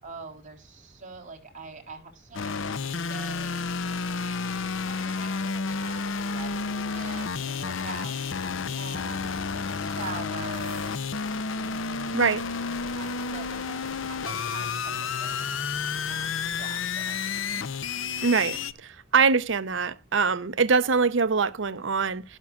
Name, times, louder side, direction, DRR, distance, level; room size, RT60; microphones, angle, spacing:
voice 1, 0.0-3.6 4.6-8.1 8.4-11.1 13.0-15.4 16.0-17.7, right 4 dB, 40° right, 3.9 m, -44 dB
sound 1, 2.3-18.7, left 5 dB, 75° left, 0.7 m, -31 dB
sound 2, 7.8-17.4, left 2 dB, 25° left, 5.9 m, -56 dB
voice 2, 18.2-18.6 19.1-22.2, right 5 dB, 65° right, 0.8 m, -23 dB
12.5 x 12.0 x 2.4 m
head